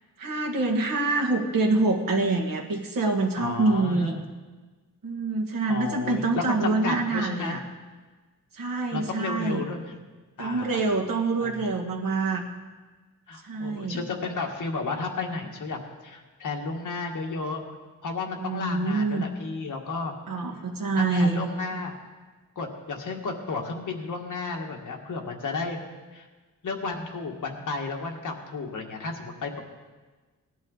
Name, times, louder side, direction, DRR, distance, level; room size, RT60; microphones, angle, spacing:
voice 1, 0.2-4.2 5.0-7.6 8.5-9.7 10.4-12.4 13.4-14.0 18.4-19.3 20.3-21.5, right 3 dB, 80° right, 2 dB, 1.7 m, -26 dB
voice 2, 3.3-4.2 5.7-7.6 8.9-10.0 10.4-10.8 11.4-11.6 13.3-17.6 18.0-20.1 21.0-22.0 22.5-25.8 26.1-26.3 26.6-29.6, left 4 dB, 60° left, 1 dB, 1.7 m, -33 dB
19.0 x 11.0 x 4.0 m, 1.3 s
wide cardioid pair, 165°, 34 cm